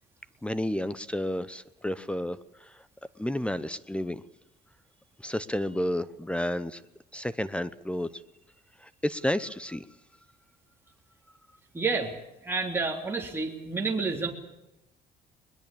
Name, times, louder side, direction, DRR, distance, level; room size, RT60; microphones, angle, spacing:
voice 1, 0.4-2.4 3.2-4.2 5.2-6.8 7.1-8.1 9.0-9.8, left 1 dB, 5° left, 17 dB, 0.8 m, -31 dB
voice 2, 11.7-12.1 12.4-14.3, right 4 dB, 15° right, 0 dB, 3.4 m, -29 dB
21.5 x 21.0 x 8.6 m, 0.92 s
cardioid pair, 110°, 17 cm